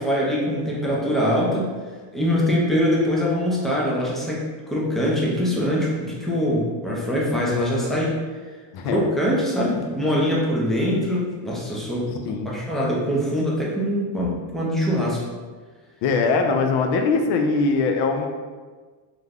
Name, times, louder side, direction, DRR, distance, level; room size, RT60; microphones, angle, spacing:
voice 1, 0.0-1.7 2.1-8.2 8.9-12.1 12.5-15.2, equal, ahead, -5 dB, 0.4 m, -23 dB
voice 2, 16.0-18.3, left 4 dB, 65° left, 4 dB, 0.5 m, -21 dB
2.5 x 2.2 x 3.3 m, 1.4 s
cardioid pair, 120°, 46 cm